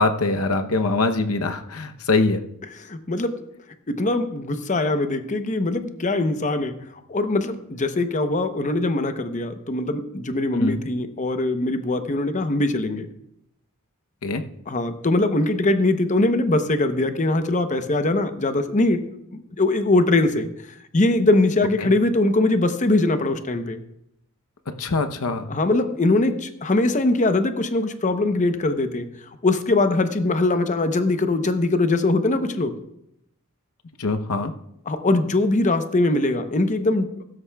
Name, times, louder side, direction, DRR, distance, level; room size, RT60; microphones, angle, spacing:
voice 1, 0.0-2.4 10.6-10.8 14.2-14.4 21.8-21.9 24.7-25.5 34.0-34.5, left 3 dB, 75° left, 7 dB, 0.8 m, -23 dB
voice 2, 2.8-3.3 3.9-6.8 7.1-13.1 14.7-19.0 19.3-20.5 20.9-23.8 25.5-29.1 29.4-32.7 34.9-37.2, left 2 dB, 35° left, 9 dB, 0.8 m, -22 dB
15.5 x 13.0 x 2.3 m, 0.81 s
head